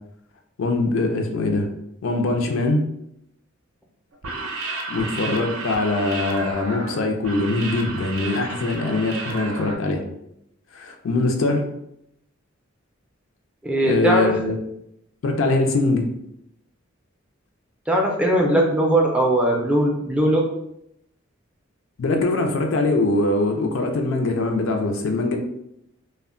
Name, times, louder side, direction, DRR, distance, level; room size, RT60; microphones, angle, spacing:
voice 1, 0.6-1.7 2.0-2.8 4.9-10.0 10.7-11.6 13.8-14.6 15.2-16.1 22.0-25.4, left 2 dB, 65° left, 4 dB, 0.4 m, -22 dB
sound 1, 4.1-9.7, right 3 dB, 70° right, 0.5 m, -32 dB
voice 2, 13.6-14.3 17.9-20.4, right 1 dB, 5° right, -1 dB, 0.4 m, -19 dB
2.2 x 2.1 x 3.6 m, 0.77 s
head